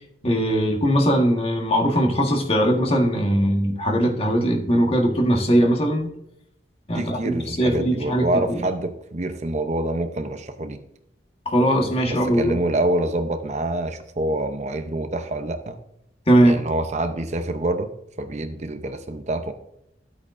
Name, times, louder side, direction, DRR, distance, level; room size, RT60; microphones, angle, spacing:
voice 1, 0.2-6.1 6.9-8.6 11.4-12.5 16.3-16.6, equal, 35° left, 2 dB, 1.5 m, -20 dB
voice 2, 6.9-10.8 12.1-15.8 16.4-17.9 18.2-19.5, right 1 dB, 40° right, 7 dB, 0.7 m, -26 dB
12.0 x 8.4 x 2.6 m, 0.80 s
head